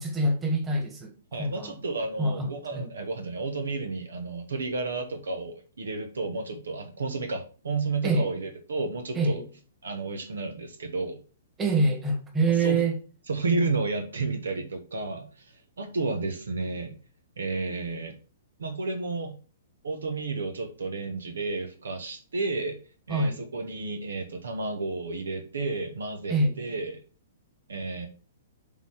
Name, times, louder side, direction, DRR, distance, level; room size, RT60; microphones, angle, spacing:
voice 1, 0.0-1.1 1.4-1.8 2.2-2.9 8.0-8.3 9.2-9.5 11.6-13.0 23.1-23.4 26.3-26.6, right 2 dB, 15° right, 2.0 m, -25 dB
voice 2, 1.3-9.4 9.8-11.2 12.6-12.8 13.3-16.9 17.4-18.1 18.6-19.3 19.8-22.8 23.1-27.0 27.7-28.1, right 3 dB, 70° right, 1.3 m, -32 dB
7.1 x 4.1 x 4.8 m
figure-of-eight pair, 115°, 0 cm